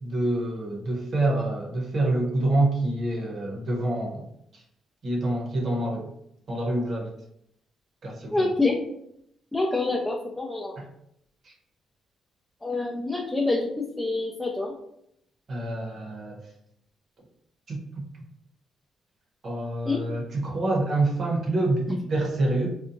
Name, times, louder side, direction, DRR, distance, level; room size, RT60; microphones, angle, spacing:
voice 1, 0.0-4.3 4.5-4.6 5.0-6.1 6.5-7.1 8.0-8.5 10.8-10.9 11.4-11.5 15.5-16.4 17.7-18.1 19.4-22.7, right 2 dB, 50° right, -1 dB, 0.8 m, -27 dB
voice 2, 8.3-8.8 9.5-10.7 12.6-13.7 14.0-14.7 19.9-20.0, left 3 dB, 15° left, -1 dB, 0.4 m, -26 dB
2.8 x 2.2 x 2.5 m, 0.76 s
cardioid pair, 90°, 0 cm